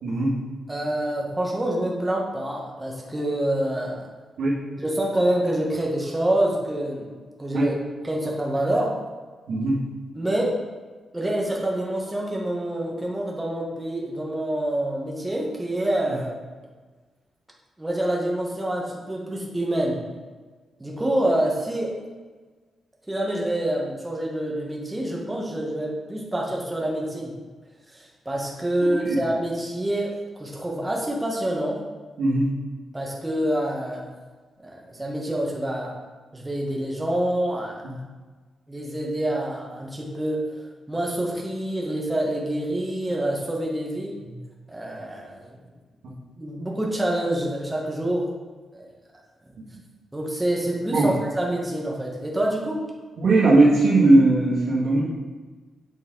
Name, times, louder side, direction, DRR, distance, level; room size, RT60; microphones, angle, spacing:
voice 1, 0.0-0.3 4.4-4.5 7.5-7.7 9.5-9.8 28.8-29.2 32.2-32.5 50.9-51.1 53.2-55.0, right 2 dB, 75° right, -7 dB, 1.8 m, -18 dB
voice 2, 0.7-4.1 4.8-7.1 7.4-7.7 8.0-8.9 10.1-10.6 11.1-16.3 17.8-20.0 20.8-22.0 23.1-27.3 27.9-30.1 30.4-31.8 32.9-34.0 34.6-35.9 36.3-37.8 38.7-40.6 40.9-44.1 44.7-45.6 46.4-48.3 48.7-48.9 50.1-52.8, right 1 dB, 10° right, -2 dB, 1.0 m, -26 dB
8.1 x 4.2 x 3.8 m, 1.4 s
wide cardioid pair, 175°, 0 cm